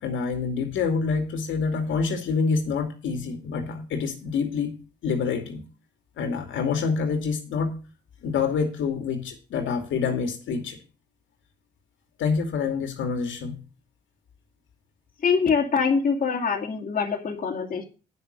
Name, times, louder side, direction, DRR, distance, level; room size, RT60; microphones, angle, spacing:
voice 1, 0.0-4.7 5.0-5.6 6.2-7.7 8.2-10.8 12.2-13.7, left 5 dB, 75° left, 5 dB, 2.4 m, -27 dB
voice 2, 15.2-17.8, left 5 dB, 45° left, 0 dB, 2.2 m, -24 dB
9.9 x 6.4 x 6.4 m, 0.33 s
cardioid pair, 90°, 20 cm